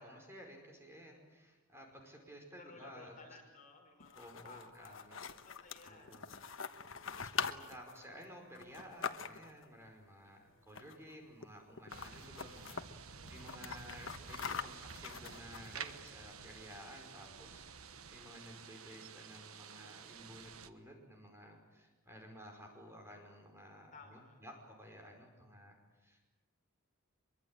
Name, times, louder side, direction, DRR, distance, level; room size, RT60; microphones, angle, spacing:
voice 1, 0.0-3.1 4.1-5.2 5.9-6.3 7.0-26.3, equal, 10° right, 3 dB, 5.3 m, -54 dB
voice 2, 2.6-7.6 10.2-10.8 13.1-13.5 23.9-24.4, left 3 dB, 35° left, 3 dB, 5.2 m, -59 dB
sound 1, 4.0-9.6 10.7-11.1 11.4-11.5 11.8-12.8 13.3-15.9, left 6 dB, 65° left, 1.3 m, -43 dB
sound 2, 11.9-20.7, right 6 dB, 80° right, 1.3 m, -51 dB
24.0 x 23.5 x 8.9 m, 1.2 s
head